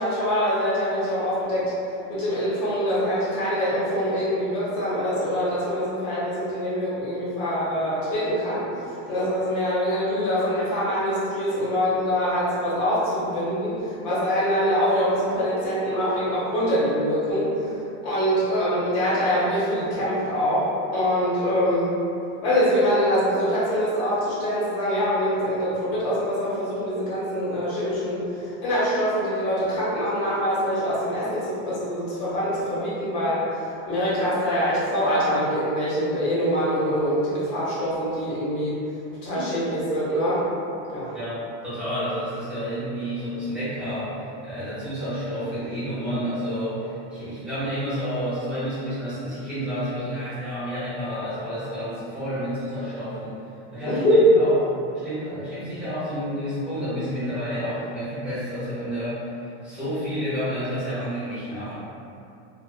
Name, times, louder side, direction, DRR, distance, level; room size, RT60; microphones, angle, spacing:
voice 1, 0.0-1.7 2.1-8.6 9.1-17.7 18.0-21.9 22.4-38.8 39.2-40.5 40.9-41.2 53.9-54.2, equal, 55° left, -9 dB, 1.0 m, -24 dB
voice 2, 41.1-53.4 53.7-54.5 54.9-61.7, equal, 5° right, -15 dB, 0.6 m, -30 dB
2.3 x 2.3 x 2.4 m, 2.7 s
supercardioid pair, 175°, 36 cm